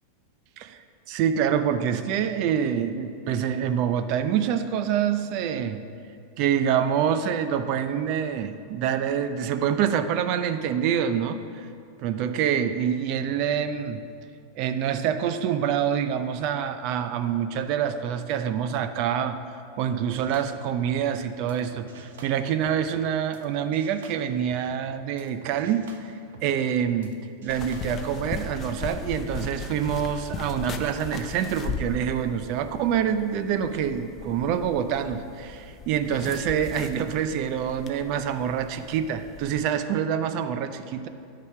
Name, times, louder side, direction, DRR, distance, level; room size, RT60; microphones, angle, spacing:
voice 1, 0.6-5.8 6.4-11.7 12.0-14.0 14.5-19.4 19.8-26.1 26.4-41.1, right 8 dB, 40° right, 10 dB, 0.5 m, -26 dB
sound 1, 20.1-23.5 23.7-27.1 27.4-28.4, right 5 dB, 80° right, 0.8 m, -49 dB
sound 2, 27.5-39.6, left 5 dB, 25° left, 0.5 m, -38 dB
12.0 x 4.9 x 5.9 m, 2.5 s
supercardioid pair, 160°, 0 cm